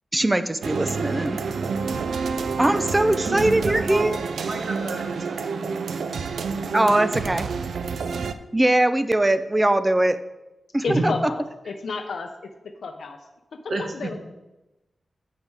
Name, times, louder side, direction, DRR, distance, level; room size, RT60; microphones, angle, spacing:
voice 1, 0.1-1.4 2.6-4.2 6.7-7.5 8.5-10.2 10.7-11.1, right 1 dB, 15° right, 11 dB, 0.4 m, -21 dB
sound 1, 0.6-8.3, right 5 dB, 85° right, 0.4 m, -28 dB
voice 2, 3.6-4.1 4.5-5.5 10.9-11.1 13.7-14.1, right 3 dB, 55° right, 3 dB, 1.1 m, -30 dB
voice 3, 10.8-12.5 12.8-13.2 13.8-14.3, left 4 dB, 80° left, 5 dB, 0.6 m, -31 dB
7.4 x 5.3 x 4.7 m, 1.0 s
wide cardioid pair, 120°, 0 cm